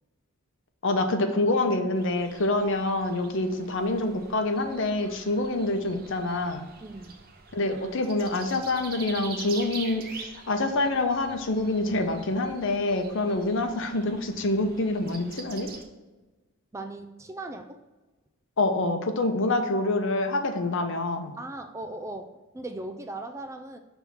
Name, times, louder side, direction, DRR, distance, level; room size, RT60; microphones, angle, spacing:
voice 1, 0.8-6.7 7.5-15.7 18.6-21.3, left 2 dB, 60° left, 6 dB, 0.7 m, -26 dB
sound 1, 1.9-15.8, right 5 dB, 45° right, 0.7 m, -45 dB
voice 2, 6.8-7.2 16.7-17.8 21.4-23.8, right 2 dB, 15° right, 7 dB, 0.3 m, -38 dB
6.1 x 3.5 x 5.6 m, 1.2 s
head